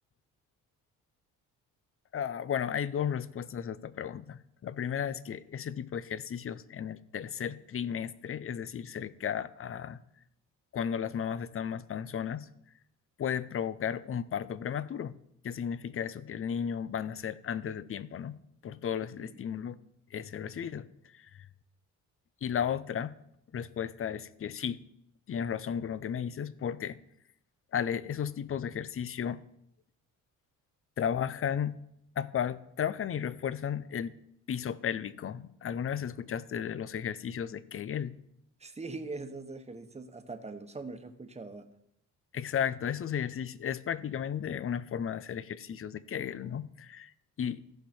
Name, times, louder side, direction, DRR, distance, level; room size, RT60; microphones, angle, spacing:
voice 1, 2.1-10.0 10.7-12.5 13.2-15.2 15.4-18.4 18.6-19.8 20.1-20.9 21.1-21.5 22.4-23.1 23.5-24.8 25.3-27.0 27.7-29.4 31.0-31.8 32.2-34.2 34.5-38.2 42.3-47.1 47.4-47.6, left 8 dB, 40° left, 0.6 m, -34 dB
voice 2, 38.6-41.7, right 3 dB, 20° right, 1.2 m, -42 dB
14.5 x 5.6 x 4.4 m
cardioid pair, 80°, 34 cm